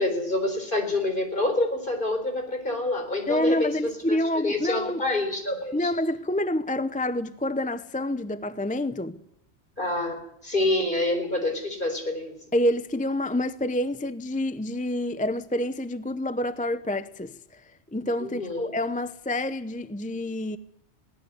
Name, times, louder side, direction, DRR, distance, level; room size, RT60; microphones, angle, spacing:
voice 1, 0.0-3.7 4.1-4.2 4.4-5.9 9.8-12.3 18.2-18.7, left 2 dB, 45° left, 4.3 m, -27 dB
voice 2, 3.3-5.0 5.7-9.2 12.5-20.6, left 1 dB, 10° left, 0.5 m, -28 dB
21.0 x 17.5 x 8.0 m
omnidirectional pair, 1.2 m